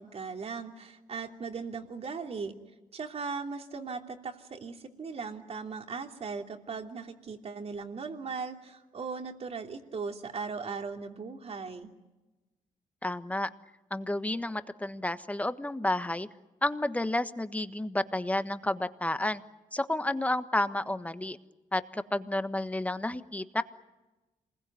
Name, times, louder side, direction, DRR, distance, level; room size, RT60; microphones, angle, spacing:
voice 1, 0.0-2.5 2.9-11.9, right 5 dB, 50° right, 4 dB, 3.0 m, -38 dB
voice 2, 13.0-13.5 13.9-16.3 16.6-19.4 19.7-21.4 21.7-23.6, left 1 dB, 10° left, 11 dB, 1.3 m, -31 dB
27.0 x 21.0 x 9.4 m, 1.1 s
cardioid pair, 90°, 13 cm